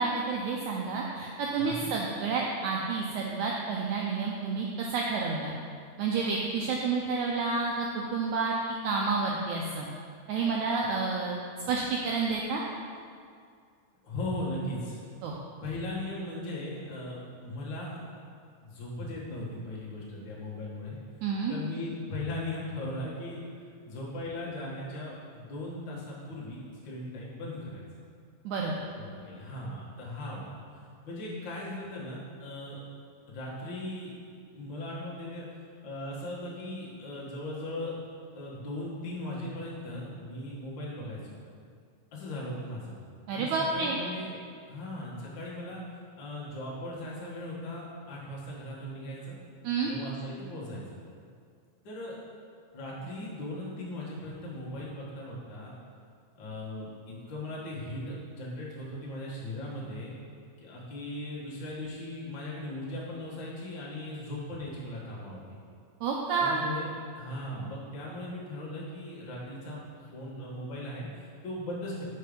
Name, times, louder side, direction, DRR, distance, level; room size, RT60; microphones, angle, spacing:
voice 1, 0.0-5.5 6.0-7.9 8.1-8.5 8.8-9.9 10.3-11.4 11.7-12.6 15.2-15.4 21.2-21.5 28.4-28.7 43.3-44.0 49.6-49.9 66.0-66.6, right 4 dB, 80° right, -2 dB, 1.7 m, -29 dB
voice 2, 1.5-1.9 14.0-15.0 15.6-18.0 18.6-21.0 21.5-23.4 23.8-27.9 28.9-30.6 31.0-32.8 33.3-34.1 34.5-35.5 35.8-37.9 38.3-41.3 42.1-42.9 43.3-44.3 44.7-45.8 46.2-49.4 49.8-50.8 51.8-52.2 52.7-55.7 56.3-60.1 60.6-65.6 66.4-66.9 67.1-72.0, left 1 dB, 45° left, -6 dB, 1.6 m, -38 dB
6.7 x 5.4 x 5.1 m, 2.2 s
omnidirectional pair, 3.9 m